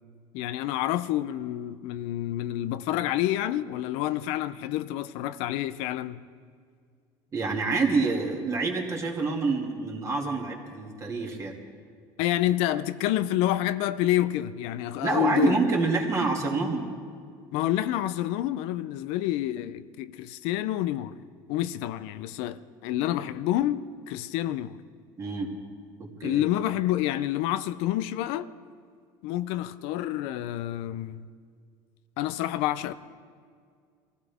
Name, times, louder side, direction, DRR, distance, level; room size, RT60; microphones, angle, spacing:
voice 1, 0.3-6.2 12.2-15.6 17.5-21.1 21.5-24.8 26.2-28.5 29.2-31.2 32.2-32.9, left 13 dB, 75° left, 0.6 m, -28 dB
voice 2, 7.3-11.5 15.0-16.8 25.2-25.5 26.0-26.4, right 4 dB, 30° right, 2.5 m, -27 dB
24.0 x 15.5 x 3.5 m
cardioid pair, 120°, 10 cm